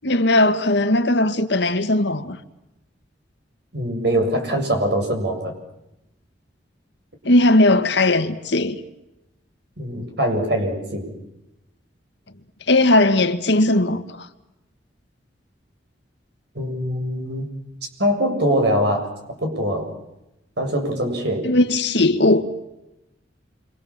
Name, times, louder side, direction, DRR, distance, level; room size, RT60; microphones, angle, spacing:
voice 1, 0.0-2.4 7.3-8.8 12.7-14.3 21.4-22.4, left 2 dB, 65° left, 1.8 m, -18 dB
voice 2, 3.7-5.5 9.8-11.1 16.5-17.5 18.0-19.1 19.4-19.9 20.6-21.5, equal, 65° right, 7.6 m, -22 dB
28.0 x 25.5 x 7.5 m
head